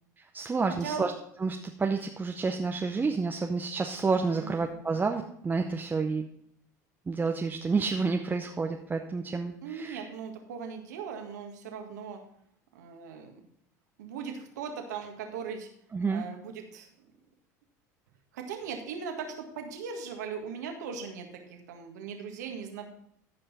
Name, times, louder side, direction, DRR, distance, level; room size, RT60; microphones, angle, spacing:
voice 1, 0.2-1.1 1.4-6.2 7.1-10.1 15.9-16.2, right 4 dB, 20° right, 3 dB, 0.8 m, -29 dB
voice 2, 9.6-12.2 12.7-13.4 14.0-15.7 16.1-16.9 18.3-22.9, right 6 dB, 75° right, 4 dB, 1.8 m, -39 dB
14.5 x 5.4 x 4.2 m, 0.71 s
hypercardioid pair, 80°, 9 cm